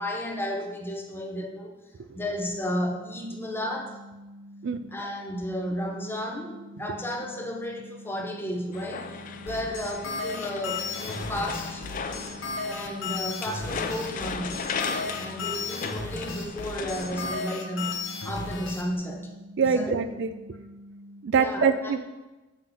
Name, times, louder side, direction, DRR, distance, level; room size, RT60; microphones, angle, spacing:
voice 1, 0.0-4.0 4.9-9.1 9.4-11.8 12.6-14.7 15.2-19.3 19.6-20.0 21.3-21.9, equal, 10° left, 1 dB, 0.8 m, -33 dB
sound 1, 2.3-21.2, equal, 15° right, 0.9 m, -47 dB
sound 2, 8.7-17.4, left 5 dB, 45° left, 0.4 m, -36 dB
sound 3, 9.5-18.8, left 4 dB, 85° left, 1.1 m, -34 dB
voice 2, 19.6-20.3 21.2-22.0, right 5 dB, 60° right, 10 dB, 0.4 m, -24 dB
7.5 x 3.8 x 5.8 m, 1.1 s
head